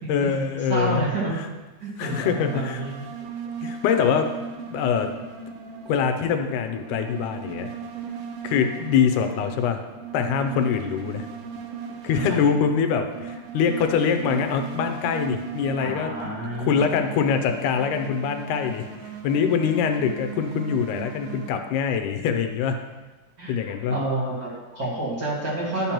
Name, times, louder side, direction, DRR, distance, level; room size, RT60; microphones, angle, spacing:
voice 1, 0.1-1.1 2.0-2.8 3.6-4.3 4.7-5.2 5.9-7.7 8.4-9.8 10.1-11.3 12.0-16.3 16.6-18.8 19.2-22.8 23.5-24.0, left 7 dB, 80° left, 6 dB, 2.1 m, -24 dB
voice 2, 0.7-1.4 1.8-3.0 12.1-12.6 15.8-16.8 23.4-25.9, right 2 dB, 40° right, -7 dB, 2.0 m, -29 dB
sound 1, 2.0-21.5, right 6 dB, 80° right, 1.3 m, -37 dB
11.0 x 6.9 x 3.0 m, 1.2 s
omnidirectional pair, 3.6 m